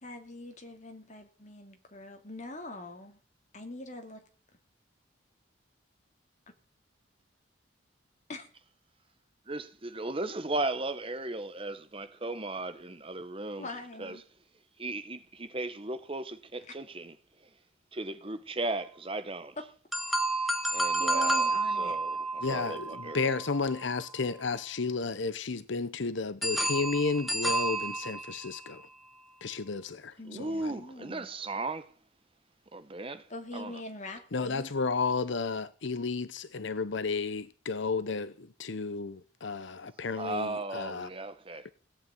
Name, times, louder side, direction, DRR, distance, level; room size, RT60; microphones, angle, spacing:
voice 1, 0.0-3.2 3.5-4.2 8.3-8.4 13.6-14.2 21.0-22.0 30.2-31.3 33.3-34.7, left 2 dB, 35° left, 2.8 m, -43 dB
voice 2, 9.5-13.7 14.0-14.2 14.8-17.5 17.9-19.6 20.7-23.3 30.2-31.9 32.7-33.8 40.1-41.7, right 2 dB, 25° right, 1.1 m, -36 dB
sound 1, 19.9-24.0 26.4-28.8, right 2 dB, ahead, 1.6 m, -30 dB
voice 3, 22.4-28.8 29.4-30.7 34.3-41.1 41.6-41.7, left 4 dB, 65° left, 0.8 m, -32 dB
17.5 x 8.4 x 9.1 m
head